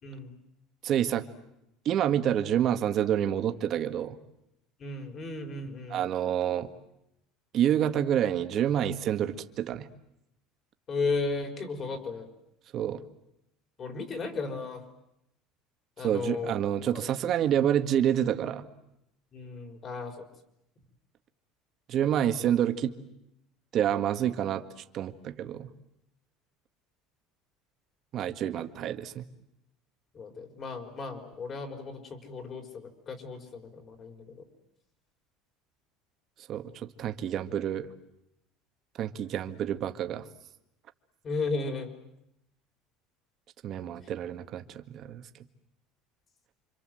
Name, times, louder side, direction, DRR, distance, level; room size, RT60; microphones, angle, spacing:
voice 1, 0.0-0.4 4.8-6.0 10.9-12.3 13.8-14.8 16.0-16.5 16.9-17.1 19.3-20.3 30.1-34.4 41.2-41.9, left 3 dB, 30° left, 5 dB, 4.5 m, -35 dB
voice 2, 0.8-1.3 1.9-4.2 5.9-6.7 7.5-9.9 12.7-13.0 16.0-18.7 21.9-23.0 23.7-24.6 24.9-25.7 28.1-29.3 36.5-37.9 39.0-40.2 43.6-45.2, right 10 dB, 40° right, 8 dB, 1.7 m, -28 dB
29.0 x 26.0 x 7.8 m, 0.82 s
cardioid pair, 150°, 0 cm